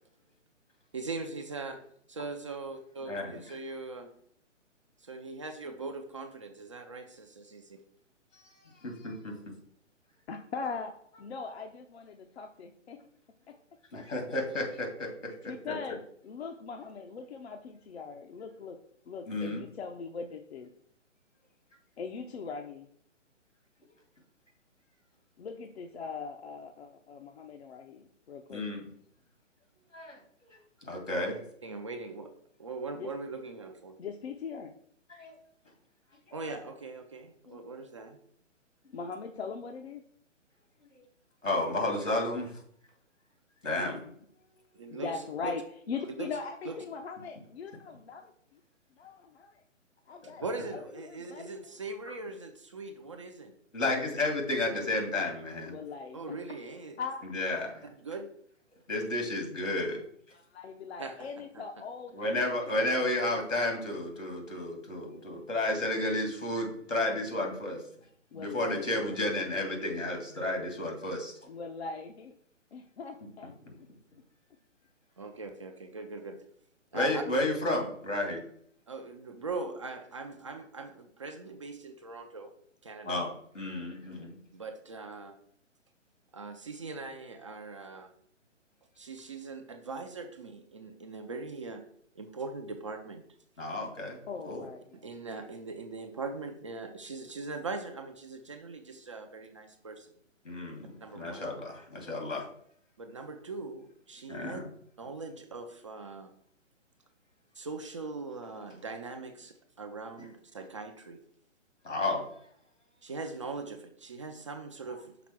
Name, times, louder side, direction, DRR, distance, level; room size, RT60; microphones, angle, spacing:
voice 1, 0.9-1.8 2.1-4.1 5.0-7.8 31.2-31.3 31.6-32.3 32.6-34.0 36.3-38.2 44.7-45.5 46.2-46.3 46.6-46.8 50.4-53.5 56.1-57.0 57.9-58.3 61.0-61.3 61.5-61.6 75.2-76.4 76.9-77.2 78.9-82.5 82.8-83.2 84.5-85.4 86.3-88.1 89.0-91.8 92.2-93.2 94.9-100.1 101.0-101.5 103.0-104.6 105.0-106.3 107.5-111.2 113.0-115.1, right 3 dB, 25° right, 5 dB, 0.4 m, -41 dB
voice 2, 8.8-9.3 13.9-15.7 19.3-19.6 28.5-28.9 29.9-30.2 30.8-31.4 35.1-35.3 37.5-37.6 41.4-42.5 43.6-44.0 50.2-50.4 53.7-55.7 57.3-57.9 58.9-60.0 62.1-67.8 68.3-71.3 76.9-78.4 83.0-83.3 83.5-84.4 93.6-94.2 94.4-94.6 100.4-102.4 104.3-104.7 111.8-112.3, left 2 dB, 85° left, 2 dB, 2.6 m, -32 dB
voice 3, 10.3-10.9 11.2-13.0 13.5-13.6 13.9-14.0 15.4-18.8 19.1-20.7 22.0-22.9 25.4-28.6 32.9-33.1 34.0-34.7 38.9-40.0 43.8-44.2 44.9-48.2 48.5-48.6 49.0-49.6 50.1-50.4 50.7-51.6 55.6-56.4 57.0-57.3 60.3-63.4 68.3-69.1 71.5-72.3 72.7-73.5 73.8-73.9 94.3-94.8, left 5 dB, 55° left, 5 dB, 0.7 m, -41 dB
6.0 x 4.1 x 5.9 m, 0.64 s
figure-of-eight pair, 135°, 37 cm